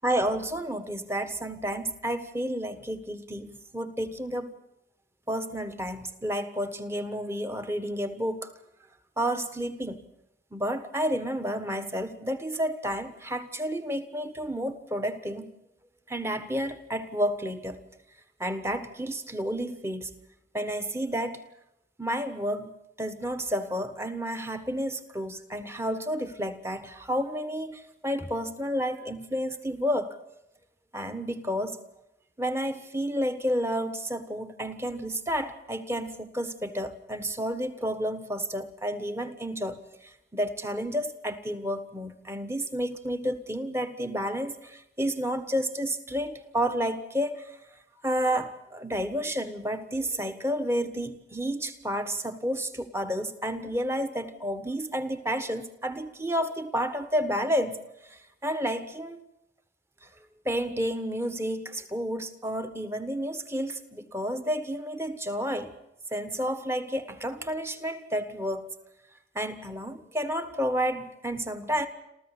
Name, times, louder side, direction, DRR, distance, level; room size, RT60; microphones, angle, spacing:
voice 1, 0.0-4.5 5.3-8.5 9.2-10.1 10.5-15.5 16.1-17.8 18.4-20.2 20.5-21.4 22.0-22.7 23.0-30.2 30.9-31.8 32.4-47.6 48.0-57.8 58.1-59.2 60.0-60.1 60.4-65.7 66.1-68.7 69.3-71.9, equal, 15° right, 10 dB, 1.4 m, -31 dB
28.0 x 14.0 x 8.4 m, 0.84 s
head